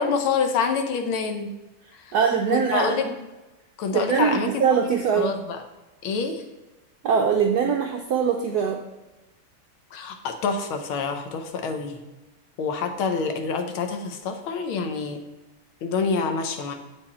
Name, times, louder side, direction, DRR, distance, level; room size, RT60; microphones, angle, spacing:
voice 1, 0.0-1.5 1.9-2.1 2.5-3.1 3.8-5.6 6.0-6.4 9.9-12.0 12.6-15.2 15.8-16.7, left 5 dB, 80° left, 6 dB, 1.7 m, -27 dB
voice 2, 2.1-3.0 3.9-5.3 7.0-8.8, right 6 dB, 80° right, 3 dB, 0.9 m, -22 dB
7.6 x 4.9 x 4.2 m, 1.1 s
omnidirectional pair, 2.3 m